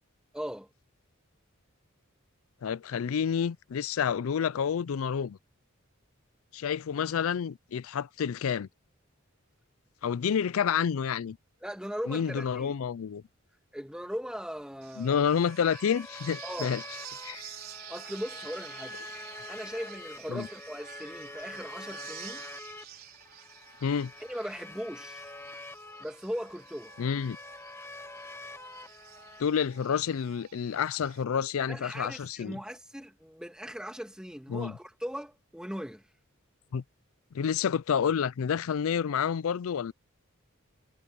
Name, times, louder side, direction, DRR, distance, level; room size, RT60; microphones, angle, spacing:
voice 1, 0.3-0.7 11.6-12.7 13.7-15.2 16.4-16.7 17.9-19.0 19.5-22.5 24.3-25.3 26.0-26.9 31.7-36.0, equal, 5° right, 1.7 m, -39 dB
voice 2, 2.6-5.4 6.5-8.7 10.0-11.4 12.1-13.2 15.0-16.8 17.2-17.5 20.3-20.5 23.8-24.1 27.0-27.4 29.4-32.6 34.5-34.8 36.7-36.8 37.3-39.9, left 7 dB, 80° left, 0.4 m, -29 dB
sound 1, 14.8-31.2, right 9 dB, 45° right, 4.6 m, -49 dB
sound 2, 15.4-29.4, left 2 dB, 10° left, 0.6 m, -46 dB
head